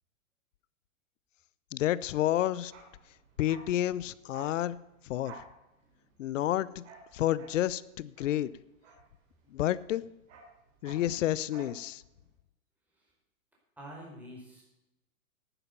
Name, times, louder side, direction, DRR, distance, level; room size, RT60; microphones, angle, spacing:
voice 1, 1.7-2.7 3.4-4.8 5.0-5.4 6.2-6.8 7.1-8.5 9.5-10.0 10.8-12.0, left 13 dB, 60° left, 19 dB, 0.7 m, -30 dB
Bark, 2.6-9.6 9.9-11.8 12.1-12.2, right 4 dB, 60° right, 3.3 m, -53 dB
voice 2, 13.8-14.6, equal, 5° right, -4 dB, 5.1 m, -47 dB
11.0 x 9.9 x 6.9 m, 0.93 s
hypercardioid pair, 125°, 42 cm